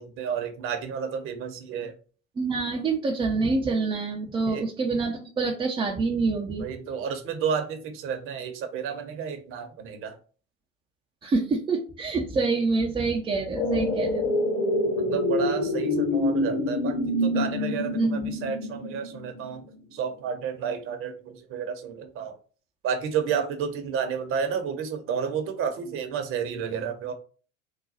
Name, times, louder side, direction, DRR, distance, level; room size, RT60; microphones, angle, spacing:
voice 1, 0.0-2.0 4.5-4.6 6.6-10.2 15.0-17.0 17.2-19.6 19.9-22.4 22.8-27.1, right 7 dB, 35° right, 7 dB, 0.7 m, -31 dB
voice 2, 2.4-6.6 11.2-14.3 17.9-18.3, right 3 dB, 15° right, -1 dB, 0.4 m, -26 dB
sound 1, 13.5-19.7 20.0-20.1, left 1 dB, 60° left, 1.6 m, -26 dB
3.9 x 2.2 x 3.9 m, 0.39 s
figure-of-eight pair, 80°, 38 cm